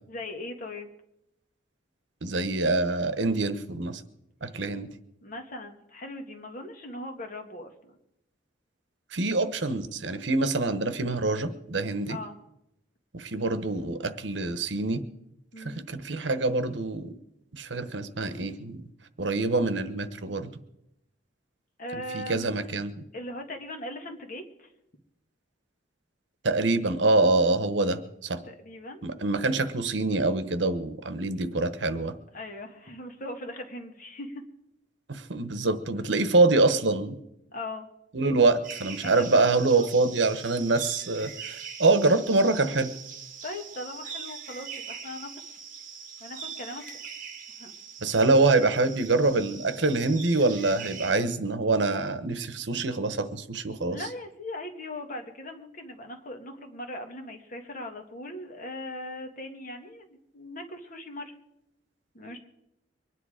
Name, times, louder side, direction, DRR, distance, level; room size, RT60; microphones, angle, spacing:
voice 1, 0.1-0.9 5.2-8.0 12.1-12.4 15.5-15.9 21.8-22.5 23.1-24.7 28.5-29.0 32.3-34.4 37.5-37.9 39.0-39.9 43.4-45.6 46.2-46.9 47.6-47.7 53.9-61.3 62.1-62.4, left 1 dB, 45° left, 4 dB, 1.8 m, -39 dB
voice 2, 2.2-4.0 4.4-4.9 9.1-12.2 13.1-15.0 15.6-17.1 17.5-18.8 19.2-20.5 22.1-22.9 26.4-28.4 29.0-32.1 35.1-37.2 38.1-42.9 48.0-54.0, right 3 dB, 75° right, 11 dB, 1.1 m, -25 dB
sound 1, 38.6-51.1, right 6 dB, 50° right, 1.7 m, -42 dB
23.5 x 9.9 x 5.0 m, 0.84 s
head